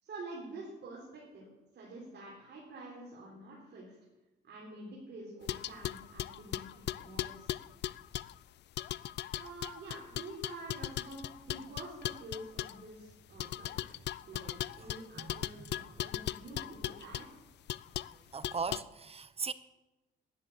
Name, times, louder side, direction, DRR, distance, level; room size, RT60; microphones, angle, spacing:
voice 1, 0.0-1.5 1.7-4.0 4.4-7.5 9.4-13.8 14.3-17.4, right 2 dB, 60° right, 4.0 m, -47 dB
sound 1, 5.5-8.4 8.8-12.8 13.4-17.3 17.7-18.1 18.4-18.8, left 13 dB, 60° left, 0.4 m, -38 dB
voice 2, 18.3-19.5, right 5 dB, 30° right, 0.7 m, -38 dB
11.0 x 10.5 x 7.4 m
cardioid pair, 90°, 20 cm